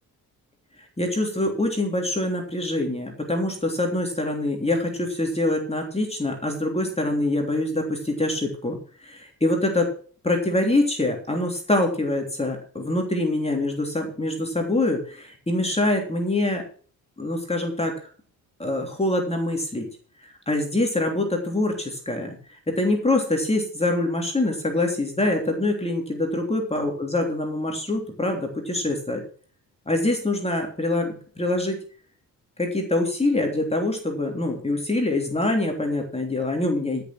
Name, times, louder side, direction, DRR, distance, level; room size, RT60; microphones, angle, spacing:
voice 1, 1.0-8.8 9.0-9.9 10.2-16.6 17.2-18.1 18.6-19.8 20.5-29.2 29.9-31.8 32.6-37.0, left 2 dB, 15° left, 2 dB, 3.3 m, -25 dB
13.0 x 6.9 x 6.2 m, 0.43 s
cardioid pair, 85°, 38 cm